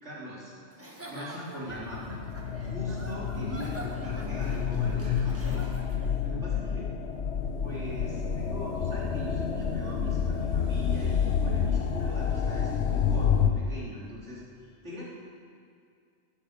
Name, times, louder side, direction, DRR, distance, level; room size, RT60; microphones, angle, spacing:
voice 1, 0.0-0.5 1.1-2.2 2.6-5.7 6.2-6.9 7.6-14.4 14.8-15.0, equal, 70° right, -6 dB, 3.4 m, -41 dB
Giggle / Chuckle chortle, 0.7-6.2, right 1 dB, 10° right, 1.4 m, -45 dB
sound 1, 1.7-13.5, left 7 dB, 65° left, 1.2 m, -29 dB
16.0 x 14.0 x 5.0 m, 2.3 s
omnidirectional pair, 1.2 m